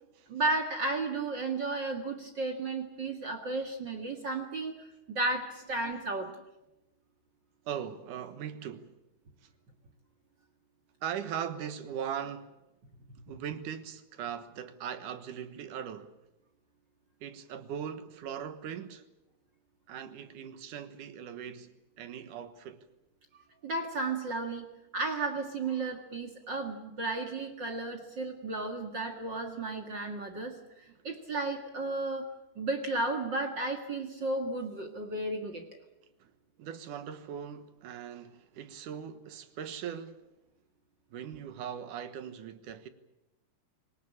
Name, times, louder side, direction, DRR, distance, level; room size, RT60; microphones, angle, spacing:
voice 1, 0.3-6.3 23.6-24.7 24.9-32.3 32.5-35.6, right 2 dB, 45° right, 1.6 m, -33 dB
voice 2, 7.7-9.0 11.0-12.5 13.3-16.1 17.2-19.0 19.9-21.7 22.0-22.9 36.2-36.3 36.6-40.2 41.1-42.9, right 8 dB, 65° right, 2.3 m, -40 dB
26.0 x 18.5 x 8.6 m
omnidirectional pair, 4.8 m